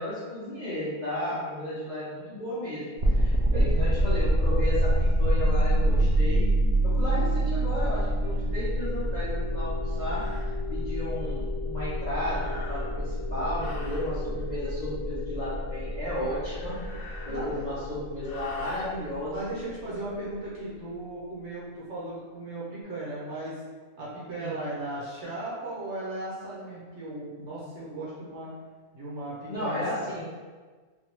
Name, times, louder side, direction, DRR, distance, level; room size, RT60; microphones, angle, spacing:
voice 1, 0.0-6.4 6.8-16.8 17.3-19.5 24.3-24.6 29.5-30.2, left 1 dB, 50° left, -11 dB, 0.5 m, -34 dB
sound 1, 3.0-19.9, right 1 dB, 75° right, 0.5 m, -27 dB
sound 2, 9.1-9.2 9.9-10.5 12.1-13.0 13.5-14.1 16.3-17.8 18.2-18.9, left 3 dB, 70° left, 1.0 m, -45 dB
voice 2, 17.3-17.7 19.3-23.6 24.0-28.5 28.9-30.2, right 1 dB, 55° right, -7 dB, 1.0 m, -37 dB
3.4 x 2.3 x 2.9 m, 1.4 s
omnidirectional pair, 1.6 m